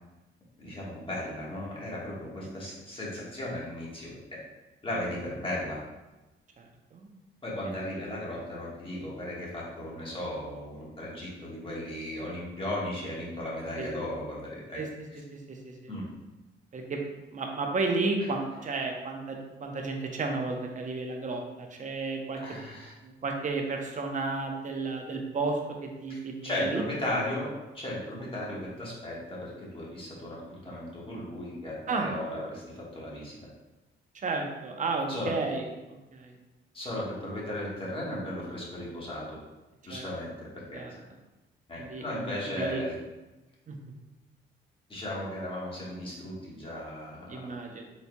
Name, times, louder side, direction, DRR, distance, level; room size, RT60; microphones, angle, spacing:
voice 1, 0.6-4.4 4.8-5.8 7.4-14.8 15.1-15.2 15.9-16.1 18.2-18.3 22.4-22.9 26.1-33.4 35.1-35.4 36.7-39.4 39.8-41.0 41.7-42.9 44.9-47.5, left 1 dB, 25° left, -5 dB, 1.4 m, -36 dB
voice 2, 17.3-22.4 23.0-25.6 26.0-26.8 31.9-32.1 34.2-35.6 36.1-36.3 39.9-40.1 40.7-40.9 41.9-42.0 42.6-42.8 43.7-43.8 47.3-47.8, right 3 dB, 40° right, 2 dB, 0.7 m, -32 dB
4.2 x 4.0 x 2.2 m, 1.1 s
cardioid pair, 90°, 20 cm